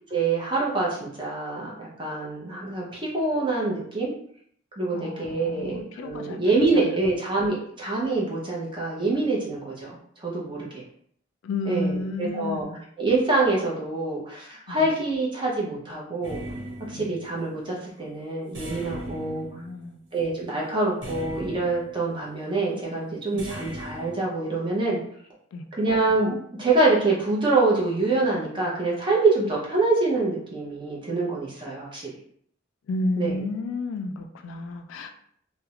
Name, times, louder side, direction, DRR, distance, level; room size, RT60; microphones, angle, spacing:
voice 1, 0.1-4.1 4.8-10.8 11.7-12.7 13.0-16.4 16.9-19.5 20.1-25.0 25.8-32.1 33.2-33.4, right 3 dB, 25° right, -4 dB, 0.6 m, -25 dB
voice 2, 4.9-7.1 11.4-12.8 14.7-14.9 16.9-17.2 19.1-20.0 23.3-23.5 25.5-25.7 32.9-35.1, left 2 dB, 80° left, 6 dB, 0.3 m, -32 dB
sound 1, 16.2-17.5 18.5-20.2 21.0-22.2 23.4-24.2, right 1 dB, 75° right, 1.0 m, -38 dB
2.4 x 2.0 x 2.8 m, 0.66 s
head